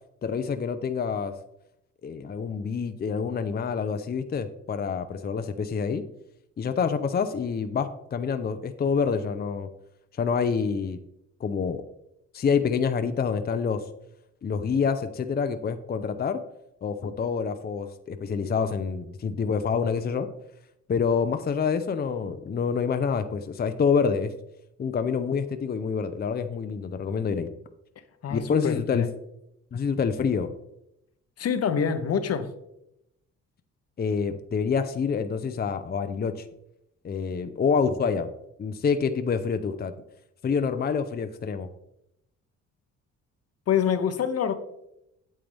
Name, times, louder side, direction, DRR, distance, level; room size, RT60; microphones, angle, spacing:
voice 1, 0.2-1.3 2.0-6.0 6.6-9.7 10.1-11.0 11.4-11.8 12.3-13.8 14.4-16.4 16.8-20.3 20.9-24.3 24.8-27.5 28.3-29.0 29.7-30.5 34.0-36.5 37.0-38.3 38.6-39.9 40.4-41.7, left 6 dB, 30° left, 9 dB, 0.6 m, -27 dB
voice 2, 28.2-29.1 31.4-32.5 43.7-44.5, left 7 dB, 55° left, 10 dB, 1.0 m, -26 dB
8.9 x 7.5 x 3.4 m, 0.83 s
cardioid pair, 90°, 30 cm